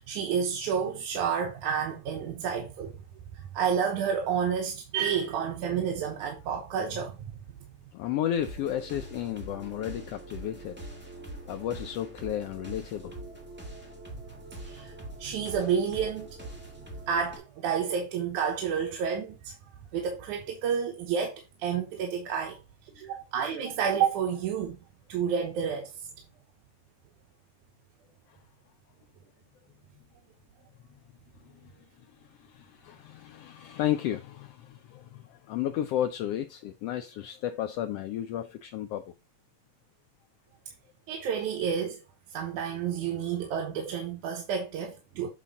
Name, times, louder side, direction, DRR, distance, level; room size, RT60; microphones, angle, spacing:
voice 1, 0.0-3.0 3.3-7.4 14.6-14.9 15.2-16.3 17.1-19.6 19.9-22.6 23.0-24.8 25.1-26.1 41.1-42.0 42.3-45.3, right 7 dB, 90° right, 2.5 m, -30 dB
voice 2, 7.9-10.8 11.5-13.2 31.6-31.7 32.1-39.1, left 11 dB, 90° left, 1.3 m, -33 dB
sound 1, 8.4-17.4, right 1 dB, 10° right, 0.6 m, -43 dB
8.3 x 4.1 x 4.0 m
omnidirectional pair, 3.4 m